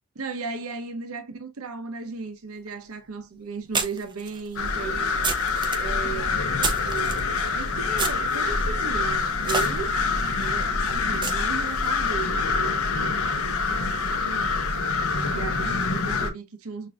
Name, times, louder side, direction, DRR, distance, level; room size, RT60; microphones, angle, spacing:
voice 1, 0.1-5.5 5.8-10.0 10.4-14.7 15.2-16.9, right 5 dB, 80° right, 0.7 m, -36 dB
sound 1, 2.7-2.8 3.7-7.2 7.9-11.9, right 3 dB, 20° right, 0.7 m, -32 dB
sound 2, 4.6-16.3, left 4 dB, 80° left, 0.8 m, -26 dB
6.4 x 2.5 x 2.3 m
head